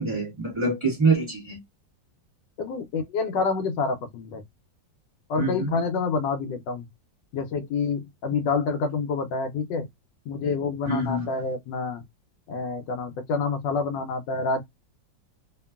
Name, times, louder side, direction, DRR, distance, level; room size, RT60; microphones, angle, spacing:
voice 1, 0.0-1.6 5.4-5.7 10.9-11.3, right 3 dB, 15° right, 1.3 m, -25 dB
voice 2, 2.6-4.4 5.3-6.9 7.3-9.9 10.3-12.0 12.5-14.6, left 4 dB, 75° left, 1.2 m, -27 dB
2.9 x 2.5 x 2.2 m
omnidirectional pair, 2.0 m